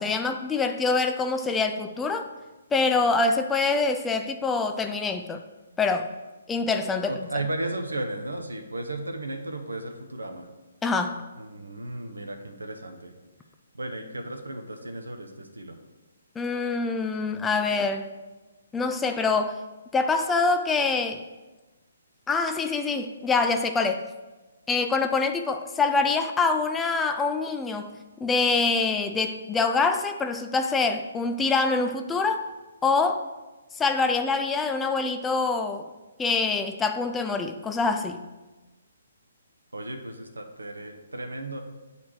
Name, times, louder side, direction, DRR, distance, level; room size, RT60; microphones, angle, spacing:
voice 1, 0.0-2.3 2.7-5.4 5.8-6.1 6.5-7.1 10.8-11.2 16.4-18.1 18.7-19.6 19.9-21.2 22.3-24.1 24.7-28.0 28.2-32.5 32.8-33.2 33.7-35.9 36.2-38.2, left 4 dB, 10° left, 7 dB, 0.4 m, -25 dB
voice 2, 7.0-10.5 11.4-13.1 13.7-15.8 39.7-41.6, right 2 dB, 80° right, 5 dB, 0.9 m, -34 dB
8.2 x 4.2 x 4.7 m, 1.2 s
figure-of-eight pair, 135°, 0 cm